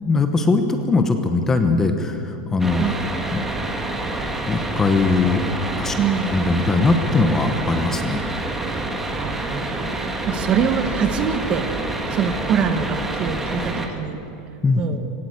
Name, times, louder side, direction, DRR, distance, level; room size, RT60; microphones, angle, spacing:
voice 1, 0.1-2.9 3.3-3.4 4.5-6.0 6.3-8.2 14.6-14.8, left 3 dB, 10° left, 7 dB, 1.0 m, -20 dB
sound 1, 2.6-13.9, right 2 dB, 5° right, 1.5 m, -27 dB
voice 2, 5.9-6.4 9.1-11.7 12.1-14.2 14.8-15.1, right 7 dB, 25° right, 8 dB, 1.1 m, -24 dB
18.5 x 17.5 x 8.1 m, 2.7 s
supercardioid pair, 175°, 4 cm